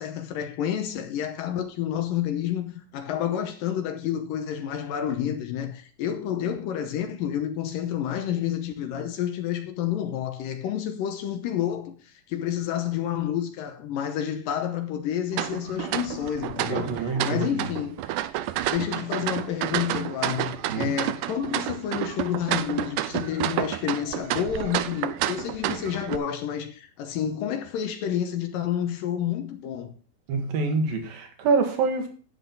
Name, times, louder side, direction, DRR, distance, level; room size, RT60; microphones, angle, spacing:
voice 1, 0.0-18.1 18.7-29.9, left 10 dB, 75° left, 2.4 m, -29 dB
sound 1, 15.3-26.2, right 13 dB, 85° right, 1.8 m, -30 dB
voice 2, 16.7-17.7 20.7-20.9 30.3-32.1, right 4 dB, 70° right, 3.5 m, -26 dB
11.0 x 7.7 x 3.9 m
omnidirectional pair, 4.3 m